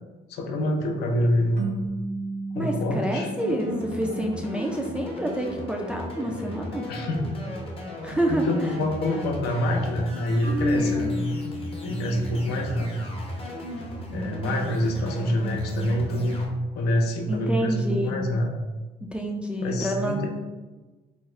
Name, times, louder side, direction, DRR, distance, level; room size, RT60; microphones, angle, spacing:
voice 1, 0.3-1.7 2.5-3.3 6.9-7.3 8.3-11.1 11.8-12.9 14.1-16.5 16.8-18.5 19.6-20.3, left 1 dB, 70° left, 2 dB, 0.6 m, -26 dB
sound 1, 1.6-4.7, right 3 dB, 65° right, 0.8 m, -35 dB
voice 2, 2.5-6.8 8.0-8.7 10.7-11.1 14.4-15.3 17.3-18.2 19.0-20.3, right 1 dB, 5° right, 0 dB, 0.3 m, -28 dB
sound 2, 3.4-16.5, equal, 35° left, 0.7 m, -36 dB
Marimba xylophone, 10.4-12.5, left 2 dB, 80° right, 1.2 m, -29 dB
3.5 x 2.0 x 3.1 m, 1.2 s
cardioid pair, 110°, 17 cm